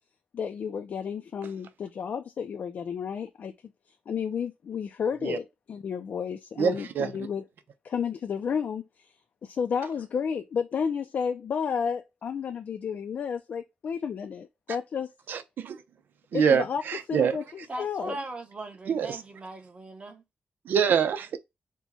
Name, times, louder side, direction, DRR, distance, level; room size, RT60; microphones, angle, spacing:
voice 1, 0.3-3.5 4.1-7.4 7.8-9.1 9.4-15.1 16.3-16.8 17.1-18.2, left 6 dB, 60° left, 0.5 m, -32 dB
voice 2, 6.6-7.1 15.3-15.8 16.3-17.4 18.9-19.2 20.7-21.4, right 7 dB, 85° right, 0.6 m, -25 dB
voice 3, 17.7-20.2, right 2 dB, 35° right, 1.1 m, -39 dB
4.5 x 2.2 x 4.1 m
wide cardioid pair, 120°, 3 cm